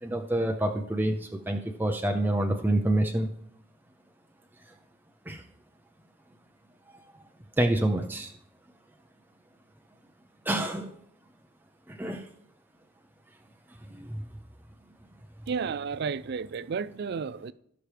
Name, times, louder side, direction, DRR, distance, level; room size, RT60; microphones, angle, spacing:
voice 1, 0.0-3.3 5.3-5.4 7.6-8.3 10.5-10.9 11.9-12.3 13.9-14.2, right 1 dB, 10° right, 0.6 m, -27 dB
voice 2, 15.5-17.5, right 5 dB, 55° right, 0.4 m, -32 dB
17.5 x 5.9 x 3.4 m
head